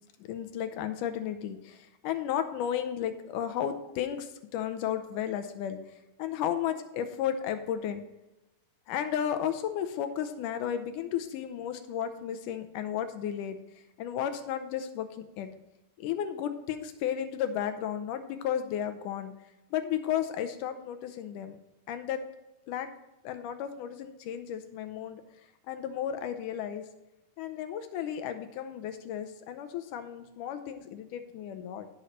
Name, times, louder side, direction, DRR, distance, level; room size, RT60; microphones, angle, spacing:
voice 1, 0.2-5.8 6.2-8.0 8.9-13.6 14.0-15.5 16.0-19.3 19.7-21.6 21.9-22.2 22.7-22.9 23.2-25.2 25.7-26.8 27.4-31.9, left 9 dB, 80° left, 9 dB, 2.3 m, -33 dB
15.0 x 6.6 x 3.2 m, 0.96 s
omnidirectional pair, 3.7 m